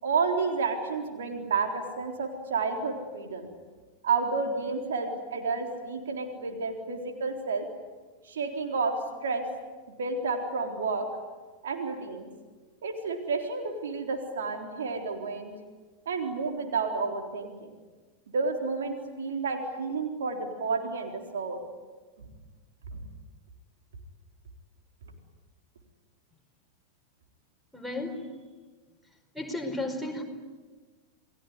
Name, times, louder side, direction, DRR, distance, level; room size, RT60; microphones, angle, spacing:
voice 1, 0.0-3.5 4.0-7.7 8.2-9.5 10.0-11.1 11.6-12.3 12.8-15.5 16.1-17.7 18.3-21.6 22.2-22.3 22.9-23.0, right 4 dB, 65° right, 3 dB, 3.8 m, -30 dB
voice 2, 27.7-28.3 29.3-30.2, left 2 dB, ahead, 6 dB, 5.0 m, -33 dB
29.5 x 20.5 x 9.6 m, 1.4 s
figure-of-eight pair, 90°, 0 cm